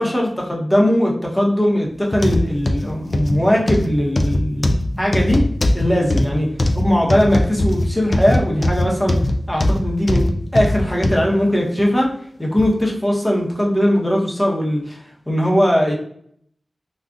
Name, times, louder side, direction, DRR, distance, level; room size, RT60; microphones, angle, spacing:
voice 1, 0.0-4.7 5.0-5.4 5.7-6.5 6.7-9.2 9.5-12.1 12.4-15.0 15.3-15.9, equal, 15° left, -2 dB, 0.9 m, -19 dB
sound 1, 2.1-11.2 11.8-11.9 12.6-12.7, left 1 dB, 55° left, 0.4 m, -19 dB
3.7 x 2.4 x 2.4 m, 0.64 s
wide cardioid pair, 55°, 0 cm